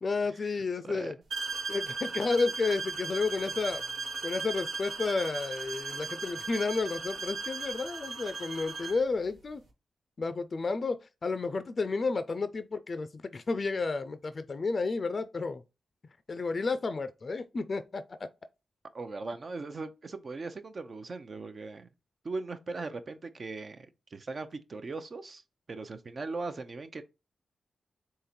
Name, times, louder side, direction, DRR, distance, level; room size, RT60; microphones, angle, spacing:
voice 1, 0.0-1.1 1.7-3.8 4.2-9.6 10.2-15.6 16.3-18.0, left 4 dB, 50° left, 0.4 m, -31 dB
sound 1, 1.3-9.1, right 4 dB, 85° right, 1.1 m, -37 dB
voice 2, 18.9-21.9 22.2-25.4 25.7-27.0, right 3 dB, 55° right, 0.6 m, -39 dB
3.8 x 2.9 x 4.3 m
cardioid pair, 50°, 0 cm